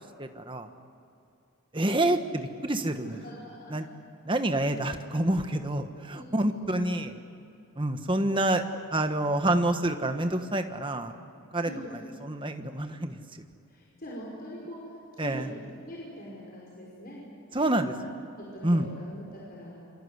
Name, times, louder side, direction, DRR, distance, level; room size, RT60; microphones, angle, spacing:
voice 1, 0.2-0.7 1.7-3.2 3.7-3.9 4.2-7.1 7.8-8.6 8.9-11.1 11.5-11.7 12.2-13.2 15.2-15.5 17.5-17.9 18.6-18.9, right 1 dB, 20° right, 7 dB, 1.4 m, -27 dB
voice 2, 3.0-3.8 6.1-6.8 11.6-12.1 13.7-17.2 17.9-18.1 18.4-19.8, equal, 45° left, -4 dB, 5.2 m, -43 dB
27.5 x 25.5 x 8.2 m, 2.6 s
head